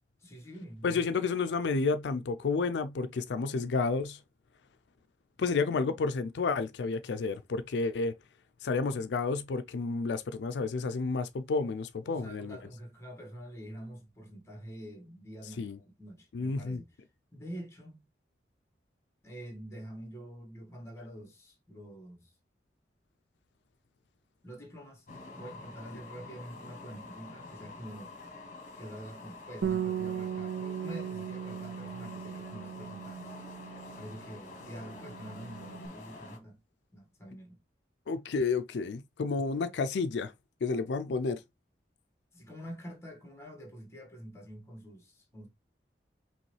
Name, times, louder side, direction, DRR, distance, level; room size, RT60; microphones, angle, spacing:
voice 1, 0.2-1.1 12.0-17.0 17.3-18.0 19.2-22.3 24.4-25.1 25.4-28.1 28.8-33.3 34.0-36.6 36.9-37.6 42.3-45.5, equal, 15° left, 1.6 m, -46 dB
voice 2, 0.8-4.2 5.4-8.1 8.6-12.6 15.6-15.8 16.3-16.8 38.1-40.3 40.6-41.4, left 4 dB, 85° left, 0.4 m, -31 dB
sound 1, 25.1-36.4, left 3 dB, 45° left, 1.3 m, -48 dB
Bass guitar, 29.6-34.3 34.6-35.9, right 8 dB, 90° right, 0.5 m, -37 dB
5.3 x 3.1 x 3.2 m
head